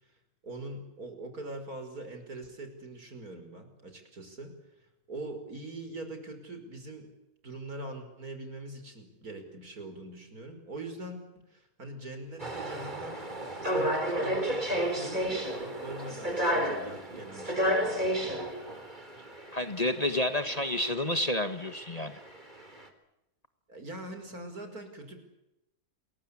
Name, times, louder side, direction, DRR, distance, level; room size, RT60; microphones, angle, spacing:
voice 1, 0.4-4.6 5.1-7.1 7.4-18.5 23.7-25.2, right 2 dB, 75° right, 7 dB, 5.9 m, -43 dB
sound 1, 12.4-22.8, equal, 30° right, 3.8 m, -32 dB
voice 2, 19.5-22.2, left 1 dB, 25° left, 9 dB, 1.6 m, -30 dB
28.5 x 22.0 x 8.6 m, 0.89 s
omnidirectional pair, 1.6 m